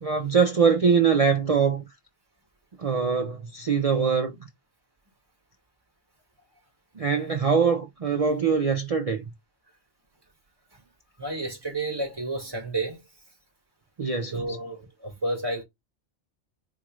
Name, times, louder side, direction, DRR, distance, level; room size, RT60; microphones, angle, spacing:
voice 1, 0.0-1.9 2.8-4.4 7.0-9.3 14.0-14.6, right 6 dB, 60° right, 0.3 m, -23 dB
voice 2, 11.2-13.0 14.3-15.6, right 2 dB, 20° right, 1.6 m, -31 dB
4.5 x 3.0 x 2.3 m
omnidirectional pair, 1.3 m